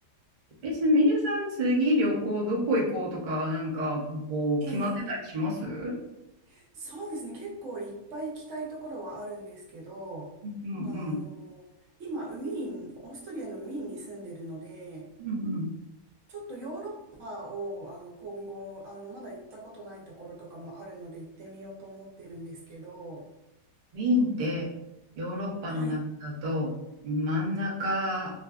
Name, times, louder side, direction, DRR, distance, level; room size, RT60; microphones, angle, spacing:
voice 1, 0.6-5.9 10.4-11.1 15.2-15.7 23.9-24.7 25.2-26.7 27.0-28.3, left 1 dB, 85° right, -4 dB, 0.4 m, -28 dB
voice 2, 4.6-5.2 6.5-10.3 10.8-11.7 12.0-15.1 16.3-23.3 25.7-26.0, right 2 dB, 60° right, -2 dB, 0.9 m, -40 dB
2.6 x 2.4 x 2.3 m, 0.91 s
omnidirectional pair, 1.8 m